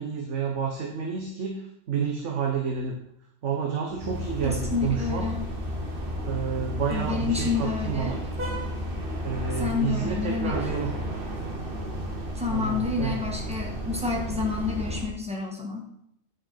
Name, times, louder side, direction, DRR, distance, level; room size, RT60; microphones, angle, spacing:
voice 1, 0.0-3.0 3.4-5.3 6.2-8.2 9.2-10.9 12.5-13.2, right 6 dB, 80° right, 1 dB, 1.3 m, -30 dB
sound 1, 3.9-15.1, equal, 50° right, 1.4 m, -32 dB
voice 2, 4.4-5.5 6.9-8.2 9.6-10.6 12.3-15.9, left 5 dB, 5° right, 0 dB, 1.4 m, -29 dB
9.3 x 5.1 x 4.3 m, 0.74 s
omnidirectional pair, 1.2 m